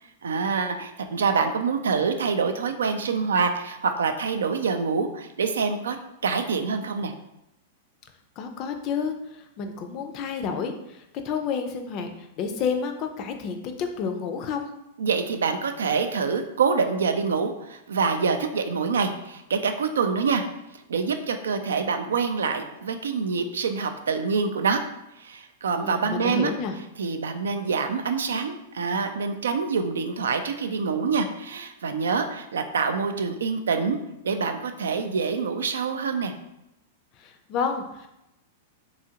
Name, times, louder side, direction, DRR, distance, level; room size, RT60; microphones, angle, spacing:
voice 1, 0.2-6.0 6.2-7.1 15.0-20.4 20.9-24.8 25.2-26.5 27.0-34.0 34.2-36.3, right 5 dB, 90° right, 7 dB, 0.3 m, -26 dB
voice 2, 8.4-9.2 9.6-11.0 11.2-12.1 12.4-14.7 25.8-26.7 37.2-38.1, left 6 dB, 40° left, 6 dB, 0.4 m, -30 dB
2.9 x 2.4 x 2.8 m, 0.88 s
hypercardioid pair, 125°, 0 cm